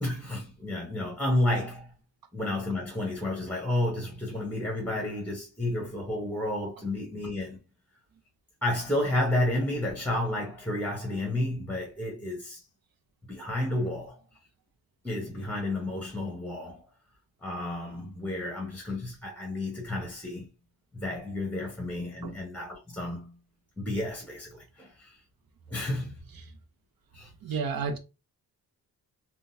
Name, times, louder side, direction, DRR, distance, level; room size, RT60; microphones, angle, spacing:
voice 1, 0.0-2.0 2.3-7.6 8.6-12.6 13.3-14.2 15.0-16.8 17.4-20.5 20.9-23.4 23.8-25.2 25.7-26.2 27.1-27.3, left 1 dB, 5° left, 0.9 m, -31 dB
voice 2, 27.4-28.0, right 5 dB, 60° right, 0.7 m, -31 dB
3.6 x 2.3 x 2.6 m
cardioid pair, 95°, 39 cm